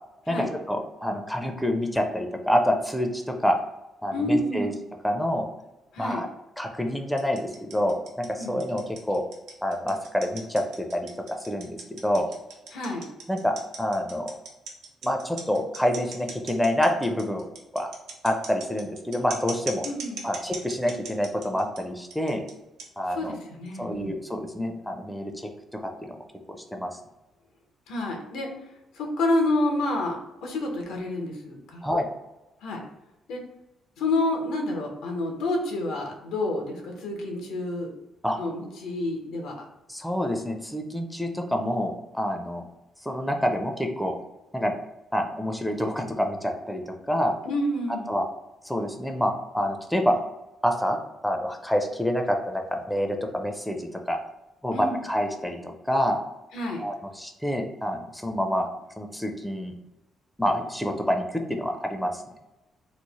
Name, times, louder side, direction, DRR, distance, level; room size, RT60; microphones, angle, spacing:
voice 1, 0.3-3.5 4.0-4.7 5.0-5.5 6.0-6.3 6.6-9.2 9.6-12.3 13.3-14.3 15.0-17.4 17.7-17.9 18.2-19.8 20.2-22.4 23.0-23.4 23.8-26.2 26.5-26.9 31.8-32.1 38.2-38.4 39.9-42.7 43.1-44.2 44.5-44.7 45.1-47.3 48.1-48.3 48.6-50.1 50.6-51.0 51.2-54.2 54.6-56.2 56.8-58.7 59.0-59.7 60.4-62.2, equal, 5° left, 3 dB, 0.4 m, -27 dB
voice 2, 4.1-4.8 5.9-6.2 8.4-8.6 12.7-13.0 19.8-20.3 23.2-24.2 27.9-28.5 29.0-31.9 32.6-32.8 33.3-33.4 34.0-37.9 38.4-39.7 47.5-48.2 54.7-55.0 56.5-56.8, left 1 dB, 85° left, 2 dB, 0.7 m, -28 dB
sound 1, 7.2-21.8 22.1-22.5 22.8-22.9 23.7-23.8, right 4 dB, 85° right, 0.7 m, -39 dB
3.1 x 2.0 x 4.0 m, 0.99 s
cardioid pair, 90°, 0 cm